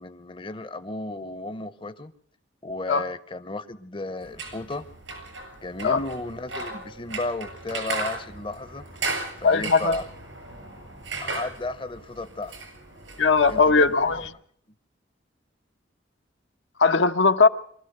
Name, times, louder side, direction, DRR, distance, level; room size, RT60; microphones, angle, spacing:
voice 1, 0.0-2.1 2.6-4.8 5.6-8.8 9.4-10.0 11.2-12.5 13.5-14.2, left 2 dB, 25° left, 12 dB, 0.7 m, -34 dB
sound 1, 4.2-14.3, right 3 dB, 85° right, 7.6 m, -36 dB
voice 2, 9.4-9.9 13.2-14.3 16.8-17.5, left 4 dB, 85° left, 7 dB, 1.0 m, -19 dB
23.5 x 14.0 x 7.9 m, 0.62 s
head